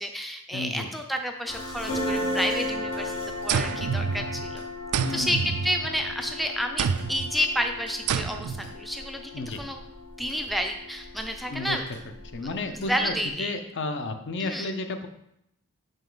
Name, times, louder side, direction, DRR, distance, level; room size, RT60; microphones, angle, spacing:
voice 1, 0.0-4.6 5.1-9.8 10.2-11.8 12.4-13.5 14.4-14.7, equal, ahead, 4 dB, 0.4 m, -30 dB
voice 2, 0.5-0.9 5.0-5.5 9.3-9.6 11.5-11.8 12.3-15.1, left 2 dB, 55° left, 7 dB, 0.7 m, -32 dB
sound 1, 1.5-13.3, left 1 dB, 85° left, 2.1 m, -36 dB
sound 2, 3.5-4.5 4.9-6.2 6.8-7.3 8.1-8.7, right 7 dB, 80° right, 0.3 m, -28 dB
6.1 x 5.3 x 3.9 m, 0.80 s
head